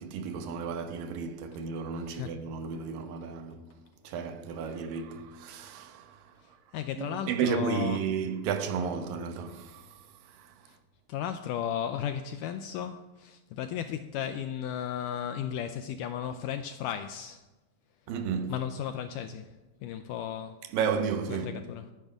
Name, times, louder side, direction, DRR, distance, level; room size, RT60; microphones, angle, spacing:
voice 1, 0.0-3.8 4.0-6.6 7.0-10.8 18.1-18.6 20.6-21.6, right 6 dB, 75° right, 2.5 m, -33 dB
voice 2, 6.4-8.0 10.7-10.8 11.1-17.4 18.5-19.5 19.8-20.6 21.3-21.9, left 9 dB, 85° left, 1.9 m, -35 dB
13.0 x 9.0 x 6.0 m
omnidirectional pair, 4.2 m